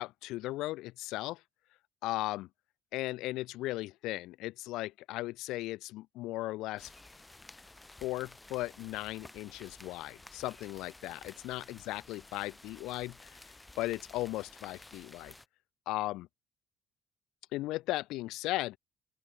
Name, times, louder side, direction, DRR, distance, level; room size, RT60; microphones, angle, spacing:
voice 1, 0.0-1.4 2.0-2.5 2.9-6.9 8.0-13.4 13.8-15.3 15.9-16.3 17.5-18.8, left 18 dB, 75° left, 0.4 m, -37 dB
sound 1, 6.8-15.5, left 2 dB, 15° left, 1.0 m, -54 dB
open air
hypercardioid pair, 55°, 0 cm